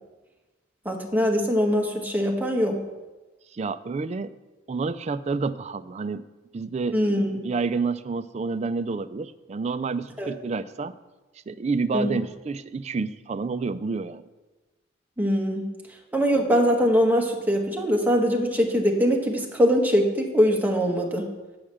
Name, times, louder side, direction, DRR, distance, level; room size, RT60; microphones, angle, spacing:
voice 1, 0.8-2.8 6.9-7.4 10.2-10.3 11.9-12.1 15.2-15.7 16.1-21.3, equal, 10° right, 0 dB, 1.1 m, -22 dB
voice 2, 3.5-4.3 4.7-6.2 6.5-7.0 7.4-10.9 11.5-14.2, right 4 dB, 35° right, 13 dB, 0.3 m, -29 dB
8.6 x 5.0 x 7.2 m, 1.2 s
head